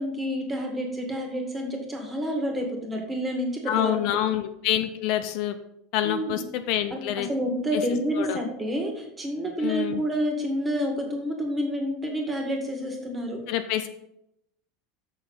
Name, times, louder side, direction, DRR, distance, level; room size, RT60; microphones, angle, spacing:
voice 1, 0.0-3.9 6.0-6.4 6.9-13.4, equal, 15° right, 2 dB, 2.0 m, -29 dB
voice 2, 3.7-5.6 5.9-7.3 7.7-7.8 8.2-8.4 9.6-10.0 13.5-13.9, left 12 dB, 55° left, 9 dB, 0.6 m, -27 dB
7.0 x 6.2 x 5.5 m, 0.79 s
supercardioid pair, 145°, 0 cm